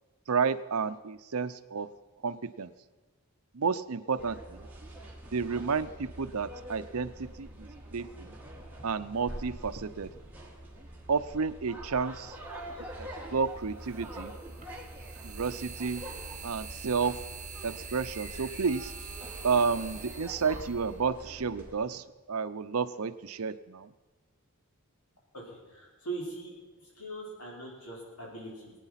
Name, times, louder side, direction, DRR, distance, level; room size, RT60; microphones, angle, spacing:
voice 1, 0.3-1.9 2.2-2.7 3.5-4.6 5.3-8.3 8.8-10.1 11.1-12.4 13.0-14.3 15.2-16.0 16.4-17.2 17.6-18.9 19.4-23.9, right 5 dB, 75° right, 13 dB, 0.6 m, -31 dB
sound 1, 4.2-21.7, right 1 dB, 10° right, 2.2 m, -45 dB
sound 2, 12.3-12.4 13.8-21.7, right 5 dB, 30° right, 1.6 m, -45 dB
sound 3, 13.3-20.3, equal, 20° left, 3.1 m, -57 dB
voice 2, 25.3-28.7, right 2 dB, 80° left, -2 dB, 4.6 m, -41 dB
21.0 x 9.1 x 5.8 m, 1.3 s
head